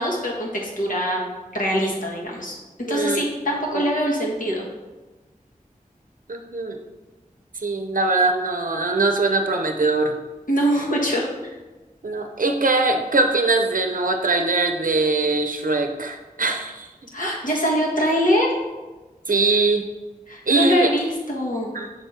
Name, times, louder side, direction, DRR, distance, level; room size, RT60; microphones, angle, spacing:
voice 1, 0.0-4.6 10.5-11.5 17.1-18.5 20.3-21.7, equal, 65° left, -3 dB, 1.4 m, -23 dB
voice 2, 2.9-3.2 3.7-3.9 6.3-6.8 7.6-10.2 12.0-16.9 19.3-19.9 20.5-20.9 21.7-21.9, right 3 dB, 70° right, 4 dB, 0.6 m, -22 dB
6.2 x 3.7 x 4.2 m, 1.2 s
wide cardioid pair, 60°, 15 cm